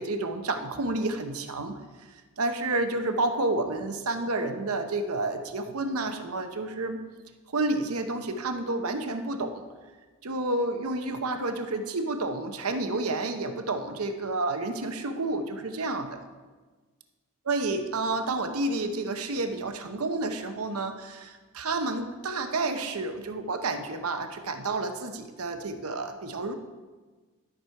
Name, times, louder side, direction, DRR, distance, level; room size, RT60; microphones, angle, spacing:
voice 1, 0.0-1.8 2.4-7.0 7.5-9.7 10.2-16.2 17.5-26.5, right 2 dB, 75° right, 7 dB, 0.9 m, -30 dB
12.5 x 6.2 x 4.6 m, 1.4 s
head